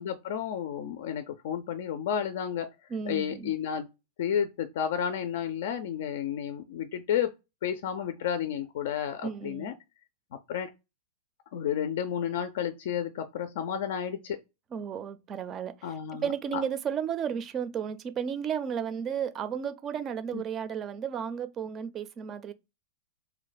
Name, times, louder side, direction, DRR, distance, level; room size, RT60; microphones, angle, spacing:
voice 1, 0.0-2.7 3.1-3.9 4.2-7.3 7.6-9.7 10.5-10.7 11.5-14.4 15.8-16.6 20.3-20.4, left 9 dB, 65° left, 0.4 m, -31 dB
voice 2, 2.9-3.5 9.2-9.7 14.7-22.5, right 7 dB, 30° right, 0.5 m, -33 dB
2.6 x 2.2 x 4.0 m
hypercardioid pair, 125°, 0 cm